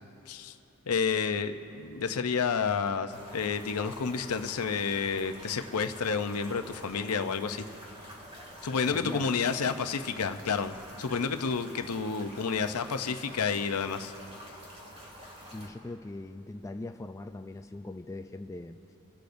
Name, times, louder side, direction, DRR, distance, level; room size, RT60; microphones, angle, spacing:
voice 1, 0.9-7.7 8.6-14.1, left 5 dB, 85° left, 8 dB, 0.6 m, -30 dB
sound 1, 3.1-15.7, equal, 30° right, 2.4 m, -48 dB
voice 2, 8.9-9.2 15.5-19.0, left 2 dB, 15° left, 6 dB, 0.3 m, -41 dB
26.5 x 11.5 x 2.6 m, 2.7 s
head